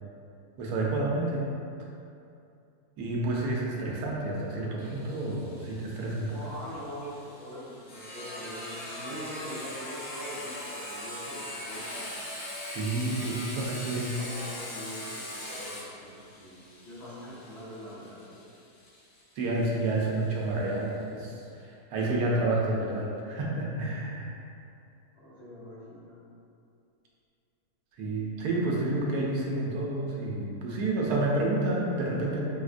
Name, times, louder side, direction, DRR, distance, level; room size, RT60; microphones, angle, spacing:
voice 1, 0.6-1.5 3.0-6.4 12.7-14.1 19.4-21.3 21.9-24.3 28.0-32.4, right 2 dB, 85° right, -3 dB, 1.1 m, -29 dB
Sawing, 4.8-20.2, left 1 dB, 85° left, 1.3 m, -41 dB
voice 2, 6.3-12.1 14.1-18.3 25.2-26.2, equal, 55° left, -9 dB, 0.8 m, -43 dB
4.6 x 2.1 x 2.4 m, 2.6 s
omnidirectional pair, 1.7 m